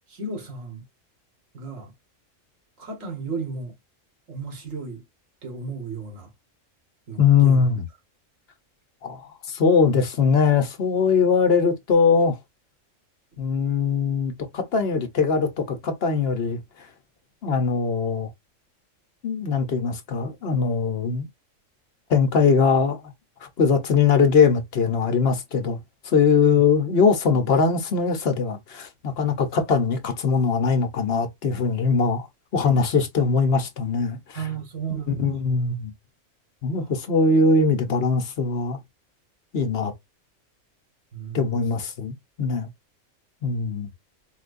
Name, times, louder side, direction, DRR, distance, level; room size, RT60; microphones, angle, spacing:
voice 1, 0.1-0.8 1.5-1.9 2.8-3.7 4.3-5.0 5.4-6.3 7.1-7.7 26.5-26.6 34.3-35.4 36.8-37.1 41.1-41.8, right 4 dB, 80° right, 1.8 m, -34 dB
voice 2, 7.2-7.8 9.0-9.2 9.5-12.4 13.4-16.6 17.4-18.3 19.2-21.3 22.1-23.0 23.4-25.8 26.0-32.3 32.5-34.4 35.1-35.9 36.6-38.8 39.5-39.9 41.3-42.7 43.4-43.9, left 5 dB, 55° left, 1.0 m, -21 dB
4.3 x 2.3 x 2.4 m
omnidirectional pair, 1.3 m